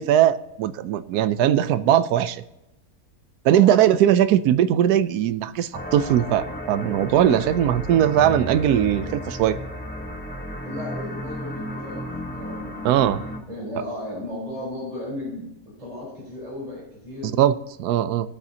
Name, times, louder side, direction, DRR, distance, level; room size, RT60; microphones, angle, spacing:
voice 1, 0.0-2.4 3.5-9.6 12.8-13.2 17.4-18.3, right 11 dB, 85° right, 12 dB, 1.1 m, -20 dB
voice 2, 3.4-4.0 7.3-7.7 10.6-13.1 13.5-15.5 15.8-17.3, left 1 dB, 25° right, -7 dB, 4.2 m, -35 dB
sound 1, 5.7-13.4, equal, 5° left, 1.0 m, -33 dB
18.5 x 8.5 x 2.8 m, 0.90 s
omnidirectional pair, 1.6 m